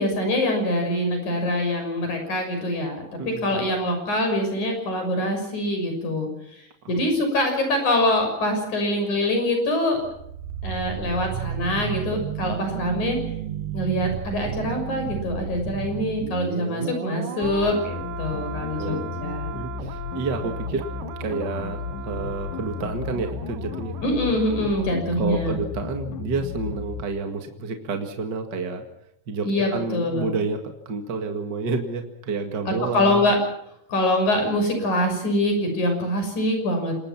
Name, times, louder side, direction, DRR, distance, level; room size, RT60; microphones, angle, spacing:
voice 1, 0.0-6.3 6.9-10.1 10.6-13.2 13.7-19.5 24.0-25.6 29.4-30.3 32.7-33.4 33.9-37.0, left 1 dB, 65° left, 5 dB, 7.8 m, -24 dB
voice 2, 3.2-3.7 6.8-6.9 18.8-20.9 21.2-24.0 25.2-28.9 29.3-33.3, right 4 dB, 40° right, 4 dB, 2.2 m, -29 dB
sound 1, 9.9-24.9 25.2-25.4, right 10 dB, 85° right, 2.9 m, -34 dB
sound 2, 17.4-27.0, left 7 dB, 80° left, 2.8 m, -34 dB
27.0 x 21.0 x 6.0 m, 0.76 s
omnidirectional pair, 3.8 m